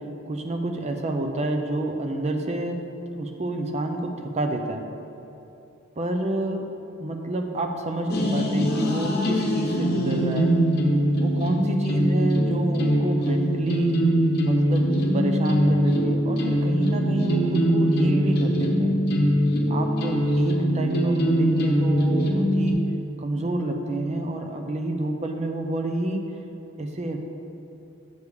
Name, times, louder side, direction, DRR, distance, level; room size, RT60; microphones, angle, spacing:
voice 1, 0.3-2.8 3.1-4.8 6.0-6.7 7.0-10.5 11.2-14.0 14.4-19.0 19.7-22.8 23.2-26.2 26.8-27.2, right 1 dB, 35° right, 4 dB, 0.6 m, -28 dB
sound 1, 8.1-22.7, equal, 50° left, 0.9 m, -22 dB
8.0 x 6.5 x 3.6 m, 2.9 s
head